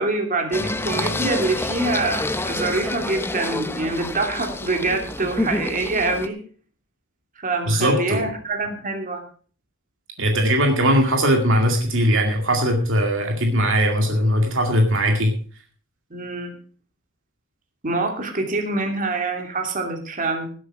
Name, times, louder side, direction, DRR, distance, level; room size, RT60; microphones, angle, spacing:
voice 1, 0.0-6.4 7.4-9.2 16.1-16.6 17.8-20.5, right 2 dB, 40° right, 3 dB, 2.7 m, -25 dB
Singing, 0.5-6.3, left 2 dB, 10° left, 0.7 m, -28 dB
voice 2, 7.7-8.3 10.2-15.3, equal, 65° right, 3 dB, 2.1 m, -19 dB
17.5 x 8.2 x 4.8 m, 0.42 s
head